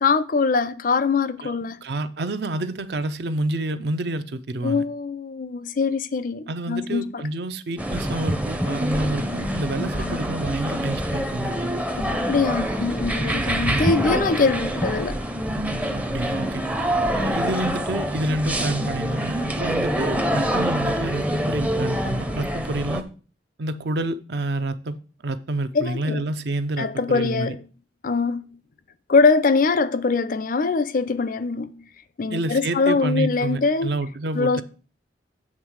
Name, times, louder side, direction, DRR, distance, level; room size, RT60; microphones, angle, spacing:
voice 1, 0.0-1.8 4.6-7.2 9.8-10.2 12.0-15.3 25.7-26.2 26.8-27.6 28.0-28.5 29.1-31.8 32.2-33.9 34.3-34.6, left 4 dB, 45° left, 0.4 m, -23 dB
voice 2, 1.8-4.8 6.5-11.5 13.6-13.9 15.9-16.6 17.1-23.1 23.6-25.0 25.2-27.6 32.3-34.6, right 1 dB, 60° right, 0.6 m, -28 dB
sound 1, 7.8-23.0, equal, 5° right, 0.5 m, -25 dB
7.4 x 3.5 x 6.3 m
head